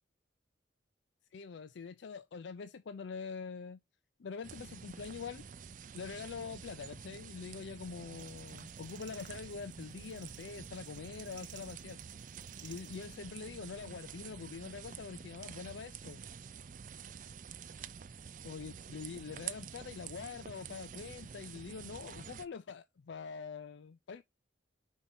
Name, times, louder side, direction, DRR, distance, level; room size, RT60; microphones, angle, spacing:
voice 1, 1.3-3.8 4.2-5.4 5.9-12.0 12.6-16.2 18.4-24.2, left 5 dB, 75° left, 0.4 m, -44 dB
sound 1, 4.4-22.5, right 7 dB, 45° right, 0.4 m, -48 dB
sound 2, 8.1-13.2, right 10 dB, 80° right, 1.1 m, -57 dB
5.2 x 4.1 x 6.0 m
head